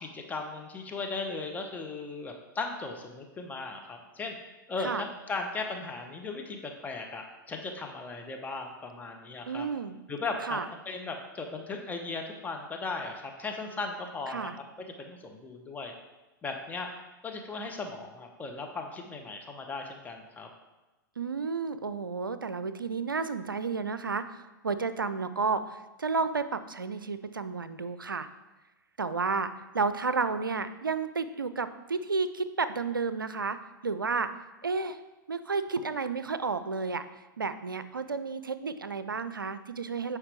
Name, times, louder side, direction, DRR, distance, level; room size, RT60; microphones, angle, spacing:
voice 1, 0.0-4.4 4.7-9.7 10.1-10.6 10.9-14.5 15.0-15.9 16.4-16.9 17.2-20.5, left 3 dB, 15° left, 2 dB, 0.9 m, -37 dB
voice 2, 9.5-10.0 10.5-10.7 14.3-14.5 21.2-28.3 29.0-33.6 33.8-34.3 34.6-35.0 35.3-37.0 37.4-40.2, right 4 dB, 85° right, 12 dB, 0.4 m, -31 dB
8.6 x 4.7 x 3.4 m, 1.1 s
figure-of-eight pair, 95°, 11 cm